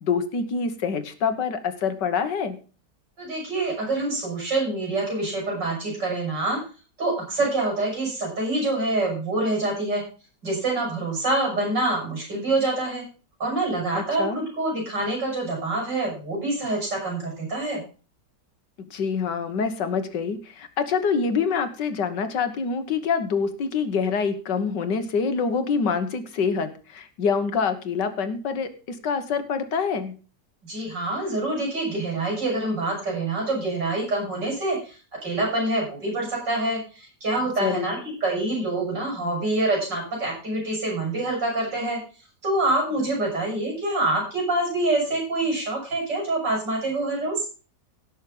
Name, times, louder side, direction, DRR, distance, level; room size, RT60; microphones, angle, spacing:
voice 1, 0.0-2.6 13.9-14.4 18.9-30.1 37.6-37.9, left 5 dB, 80° left, 9 dB, 2.0 m, -26 dB
voice 2, 3.2-6.6 7.0-10.0 10.4-13.0 13.4-17.8 30.6-34.9 35.2-42.0 42.4-47.4, right 2 dB, 85° right, -1 dB, 7.9 m, -26 dB
16.5 x 6.5 x 5.4 m, 0.36 s
omnidirectional pair, 1.8 m